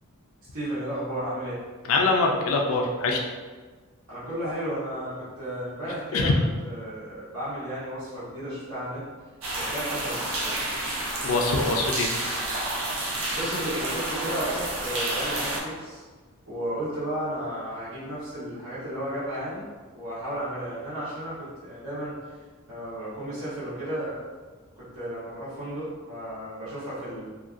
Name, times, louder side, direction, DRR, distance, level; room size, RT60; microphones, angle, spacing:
voice 1, 0.5-1.6 4.1-6.3 6.6-9.0 9.5-10.7 13.3-16.0 16.5-19.7 19.9-22.1 22.7-24.2 24.8-27.3, right 1 dB, 90° right, -12 dB, 1.1 m, -33 dB
voice 2, 1.9-3.3 6.1-6.3 11.2-12.1, left 3 dB, 70° left, 1 dB, 0.4 m, -23 dB
sound 1, 9.4-15.6, right 1 dB, 70° right, 0.6 m, -30 dB
2.6 x 2.3 x 2.4 m, 1.4 s
head